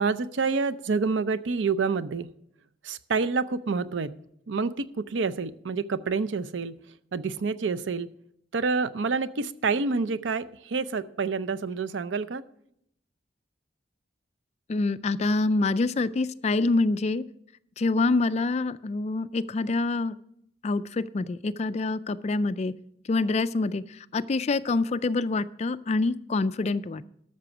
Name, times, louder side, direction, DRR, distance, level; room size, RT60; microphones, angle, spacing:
voice 1, 0.0-2.3 2.8-4.1 4.5-6.8 7.1-8.1 8.5-12.4, right 4 dB, 90° right, 14 dB, 0.6 m, -28 dB
voice 2, 14.7-17.2 17.8-20.2 20.6-22.7 23.1-23.8 24.1-27.0, left 3 dB, 35° left, 15 dB, 0.4 m, -26 dB
13.0 x 6.8 x 6.1 m, 0.73 s
head